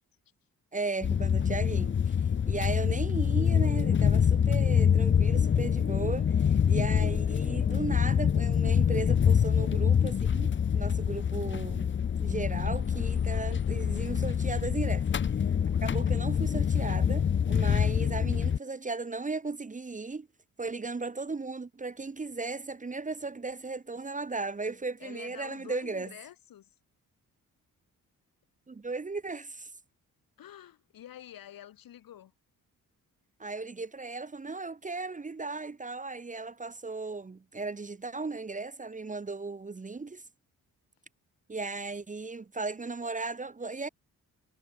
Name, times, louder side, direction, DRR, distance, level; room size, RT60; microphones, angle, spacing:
voice 1, 0.7-11.9 12.2-15.1 15.4-20.3 20.6-26.1 28.7-29.7 33.4-40.2 41.5-43.9, right 3 dB, 20° right, 0.9 m, -36 dB
sound 1, 1.0-18.6, left 7 dB, 35° left, 0.6 m, -26 dB
voice 2, 25.0-26.8 30.4-32.3, left 11 dB, 85° left, 6.5 m, -48 dB
cardioid pair, 75°, 34 cm